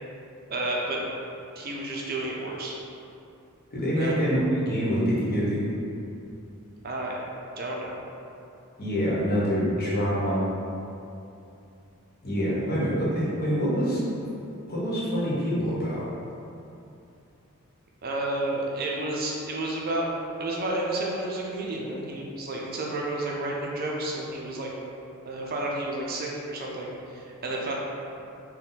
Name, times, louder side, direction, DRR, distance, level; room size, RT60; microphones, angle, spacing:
voice 1, 0.5-1.0 1.6-2.8 3.9-4.2 6.8-7.2 7.6-8.0 18.0-20.1 20.4-24.7 25.3-27.7, right 2 dB, 45° right, -2 dB, 0.5 m, -31 dB
voice 2, 3.7-5.6 8.8-10.4 12.2-14.0 14.7-16.0, equal, 45° left, -8 dB, 1.0 m, -25 dB
4.2 x 2.2 x 3.9 m, 2.7 s
head